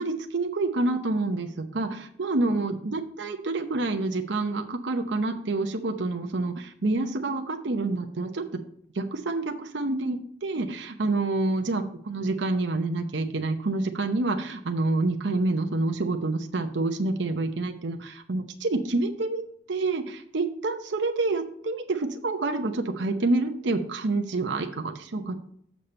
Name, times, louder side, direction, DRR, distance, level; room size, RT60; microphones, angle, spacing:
voice 1, 0.0-8.4 8.9-25.3, right 2 dB, 65° right, 5 dB, 0.8 m, -28 dB
7.3 x 6.9 x 4.3 m, 0.66 s
head